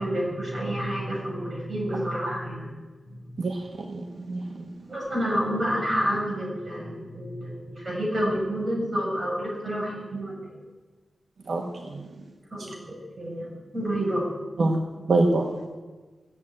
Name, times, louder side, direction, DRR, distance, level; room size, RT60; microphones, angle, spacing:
voice 1, 0.0-2.7 3.1-3.2 4.9-10.4 12.5-14.3, equal, 30° right, -4 dB, 6.1 m, -29 dB
voice 2, 3.4-4.7 11.5-12.1 14.6-14.8 15.1-15.6, right 2 dB, 60° right, 2 dB, 1.3 m, -26 dB
16.0 x 7.7 x 8.8 m, 1.3 s
wide cardioid pair, 140°, 0 cm